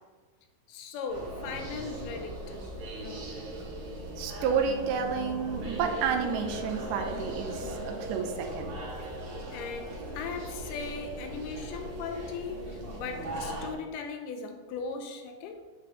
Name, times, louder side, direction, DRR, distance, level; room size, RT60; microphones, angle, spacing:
voice 1, 0.7-3.5 9.5-15.6, left 4 dB, 85° left, 2.2 m, -39 dB
sound 1, 1.1-13.7, right 1 dB, 60° right, 2.4 m, -38 dB
voice 2, 4.2-8.7, right 6 dB, 85° right, 2.2 m, -30 dB
8.4 x 6.0 x 3.0 m
omnidirectional pair, 3.8 m